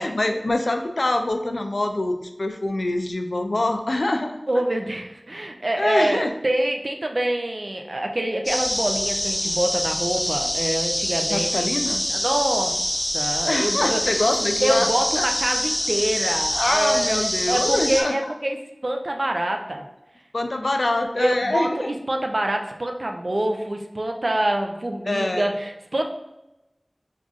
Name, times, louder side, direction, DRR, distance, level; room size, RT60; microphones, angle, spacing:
voice 1, 0.0-4.4 5.8-6.3 11.3-12.0 13.5-14.9 15.2-15.3 16.5-18.3 20.3-21.9 25.1-25.5, left 2 dB, 85° left, 5 dB, 0.3 m, -24 dB
voice 2, 4.5-11.7 12.1-12.8 13.1-14.2 14.6-18.6 18.8-19.9 21.2-26.1, right 1 dB, 70° right, 3 dB, 0.4 m, -25 dB
sound 1, 8.4-18.0, equal, 20° left, 0.6 m, -25 dB
5.3 x 2.4 x 2.4 m, 0.93 s
wide cardioid pair, 45°, 0 cm